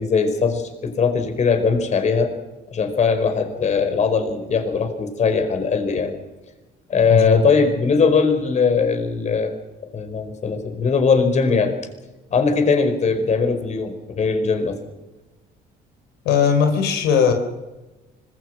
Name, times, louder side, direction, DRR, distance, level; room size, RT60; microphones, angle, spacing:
voice 1, 0.0-2.3 2.7-6.1 6.9-9.5 9.9-11.7 12.3-14.8, left 5 dB, 45° left, 8 dB, 4.9 m, -20 dB
voice 2, 7.1-7.4 16.2-17.3, left 7 dB, 90° left, 6 dB, 3.9 m, -17 dB
25.5 x 21.5 x 6.4 m, 1.1 s
cardioid pair, 110°, 17 cm